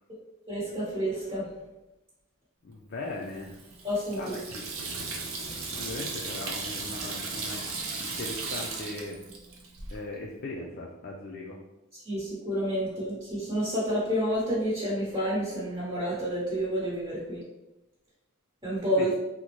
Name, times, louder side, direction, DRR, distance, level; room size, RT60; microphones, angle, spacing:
voice 1, 0.5-1.5 3.8-4.2 12.0-17.4 18.6-19.1, equal, 25° right, -9 dB, 1.0 m, -29 dB
voice 2, 2.6-3.6 4.2-4.7 5.5-7.6 8.0-9.2 9.9-11.6 18.9-19.1, left 2 dB, 45° left, -2 dB, 0.4 m, -39 dB
Water tap faucet / Sink (filling or washing), 3.2-10.0, right 4 dB, 75° right, 0.6 m, -36 dB
3.7 x 2.1 x 2.9 m, 0.95 s
head